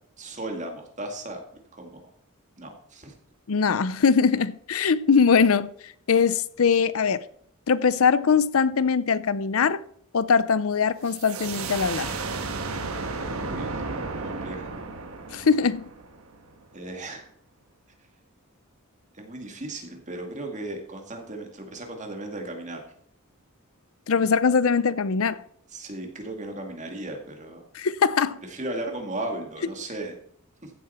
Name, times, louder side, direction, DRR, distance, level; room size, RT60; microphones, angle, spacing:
voice 1, 0.2-1.4 1.7-1.9 2.6-3.1 13.4-13.8 14.2-14.8 16.7-17.2 19.1-22.8 25.7-27.6 28.5-30.1 30.6-30.7, right 2 dB, 35° right, 2.1 m, -36 dB
voice 2, 3.5-5.7 6.1-7.2 7.7-9.8 10.1-12.1 15.3-15.8 24.1-25.4 27.7-28.4, left 5 dB, 70° left, 0.6 m, -21 dB
sound 1, 11.0-16.6, right 3 dB, 80° right, 1.3 m, -33 dB
15.0 x 7.6 x 4.4 m
head